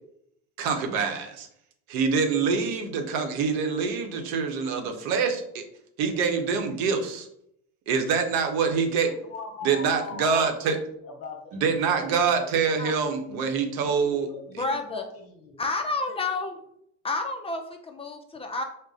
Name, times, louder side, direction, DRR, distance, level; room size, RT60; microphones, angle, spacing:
voice 1, 0.6-1.5 1.9-5.6 6.0-7.3 7.9-9.1 9.6-10.8 11.5-14.3, right 5 dB, 65° right, 5 dB, 0.8 m, -25 dB
voice 2, 9.0-11.6 12.0-12.1 13.8-15.6, left 3 dB, 35° left, 3 dB, 1.0 m, -41 dB
voice 3, 14.5-15.0 15.6-16.6 17.0-18.6, left 3 dB, 15° left, 4 dB, 0.3 m, -30 dB
3.6 x 2.1 x 3.9 m, 0.73 s
supercardioid pair, 95°, 38 cm